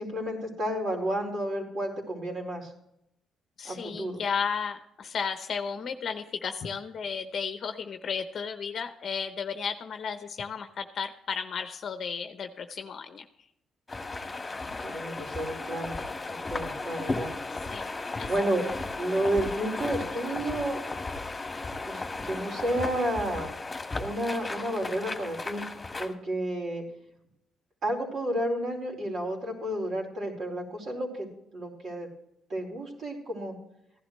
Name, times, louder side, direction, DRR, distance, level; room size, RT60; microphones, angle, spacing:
voice 1, 0.0-2.7 3.6-4.2 14.5-16.0 16.3-17.3 18.3-18.6 19.0-20.8 21.8-23.5 23.9-25.6 26.0-26.8 27.8-31.3 31.5-32.1 32.5-33.6, right 1 dB, 55° right, -1 dB, 4.6 m, -31 dB
voice 2, 3.6-13.3 17.7-17.9 18.2-18.3, left 6 dB, 55° left, 7 dB, 0.8 m, -34 dB
sound 1, 13.9-26.1, left 3 dB, 20° left, 1.9 m, -35 dB
16.0 x 11.5 x 3.2 m, 0.80 s
cardioid pair, 105°, 0 cm